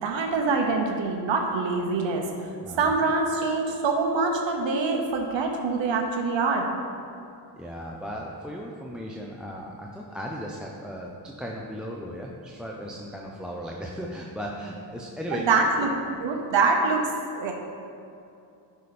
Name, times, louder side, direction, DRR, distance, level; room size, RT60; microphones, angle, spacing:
voice 1, 0.0-2.3 2.8-6.7 15.3-15.9 16.2-17.5, right 4 dB, 80° right, 2 dB, 1.0 m, -25 dB
voice 2, 2.6-3.0 7.5-16.1, equal, ahead, -2 dB, 0.5 m, -36 dB
11.0 x 5.0 x 4.2 m, 2.5 s
wide cardioid pair, 145°, 44 cm